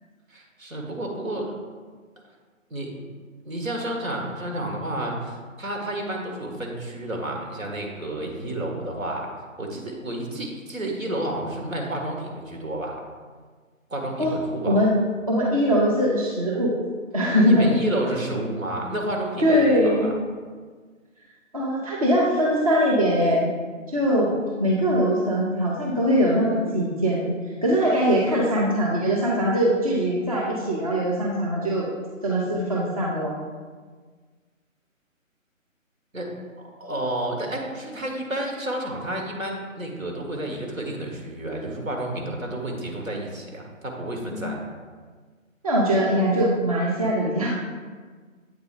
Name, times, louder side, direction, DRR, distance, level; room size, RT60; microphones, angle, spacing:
voice 1, 0.3-1.5 2.7-3.0 3.4-9.3 9.6-13.0 13.9-14.8 17.4-20.1 36.1-36.3 36.6-44.6, right 1 dB, 75° right, 0 dB, 1.5 m, -31 dB
voice 2, 15.3-16.7 17.1-17.8 19.4-20.1 21.5-23.5 23.9-24.3 24.6-27.3 27.6-31.8 32.2-33.3 44.3-44.5 45.6-47.7, equal, 25° right, -4 dB, 0.6 m, -21 dB
8.0 x 3.7 x 3.7 m, 1.5 s
figure-of-eight pair, 145°, 41 cm